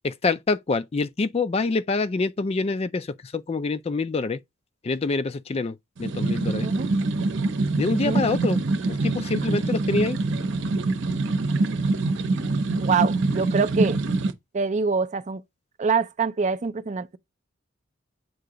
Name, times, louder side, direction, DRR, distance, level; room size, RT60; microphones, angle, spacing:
voice 1, 0.0-4.4 4.8-6.7 7.8-8.6 8.9-10.2, left 3 dB, 30° left, 0.4 m, -26 dB
sound 1, 6.0-14.3, right 3 dB, 70° right, 0.8 m, -25 dB
voice 2, 6.6-6.9 7.9-8.3 12.8-14.0 14.5-15.4 15.8-17.2, right 5 dB, 40° right, 0.4 m, -25 dB
7.8 x 2.8 x 5.0 m
head